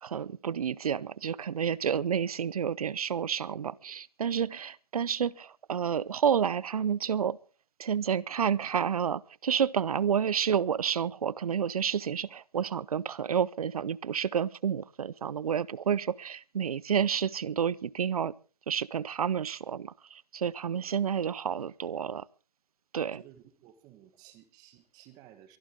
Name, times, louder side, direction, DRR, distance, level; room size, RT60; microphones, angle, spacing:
voice 1, 0.0-7.4 7.8-18.3 18.7-22.3 22.9-23.2, right 8 dB, 60° right, 0.6 m, -30 dB
voice 2, 23.0-25.6, right 12 dB, 20° right, 1.5 m, -55 dB
23.5 x 12.0 x 3.7 m
hypercardioid pair, 150°, 21 cm